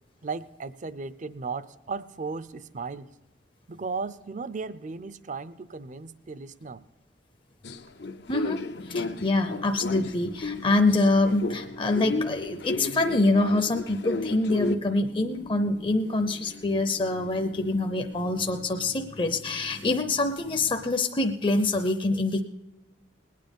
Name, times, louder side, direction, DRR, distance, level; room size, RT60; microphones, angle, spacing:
voice 1, 0.2-3.1 3.7-6.8 11.2-11.3, right 4 dB, 45° right, 16 dB, 0.6 m, -36 dB
sound 1, 7.6-11.1 11.4-14.7, left 2 dB, 65° left, 0.7 m, -33 dB
sound 2, 8.8-20.9, left 1 dB, 85° left, 1.9 m, -46 dB
voice 2, 8.8-22.4, left 2 dB, 30° left, 5 dB, 0.7 m, -25 dB
20.0 x 9.4 x 5.3 m, 1.1 s
head